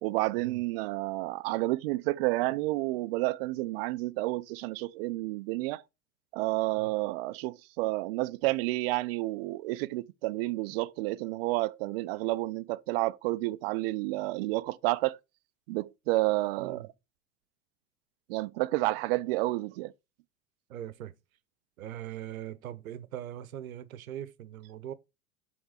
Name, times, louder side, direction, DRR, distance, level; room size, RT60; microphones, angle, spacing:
voice 1, 0.0-5.8 6.3-15.2 15.7-16.8 18.3-19.9, right 19 dB, 45° right, 0.5 m, -30 dB
voice 2, 20.7-21.1 21.8-24.9, right 11 dB, 65° right, 0.9 m, -41 dB
7.9 x 3.5 x 5.1 m
figure-of-eight pair, 90°, 44 cm